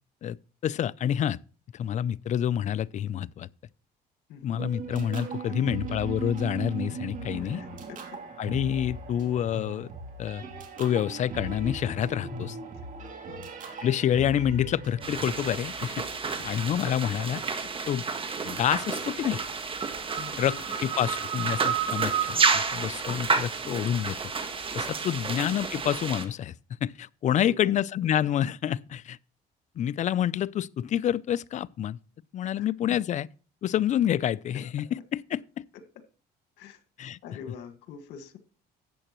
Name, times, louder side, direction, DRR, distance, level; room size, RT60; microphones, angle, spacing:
voice 1, 0.6-1.4 1.7-3.5 4.4-7.6 8.4-9.9 10.2-10.4 10.8-12.6 13.8-16.0 16.4-17.4 17.9-18.0 18.4-19.4 20.4-20.6 20.8-24.2 24.7-26.5 26.8-29.2 29.8-32.0 32.3-33.3 33.6-34.8 35.1-35.6 37.0-37.2, left 10 dB, 45° left, 0.5 m, -28 dB
sound 1, 4.6-15.4, right 3 dB, 50° right, 3.0 m, -38 dB
voice 2, 7.4-8.0 13.2-13.5 16.2-16.7 17.6-17.7 18.4-18.6 20.2-20.9 22.3-22.5 25.0-25.2 27.3-27.8 32.6-32.7 34.5-34.6 35.7-35.8 36.6-36.8 37.2-38.4, left 7 dB, 90° left, 1.7 m, -46 dB
sound 2, 15.0-26.2, right 5 dB, 30° right, 1.6 m, -30 dB
13.5 x 8.8 x 3.0 m
cardioid pair, 110°, 17 cm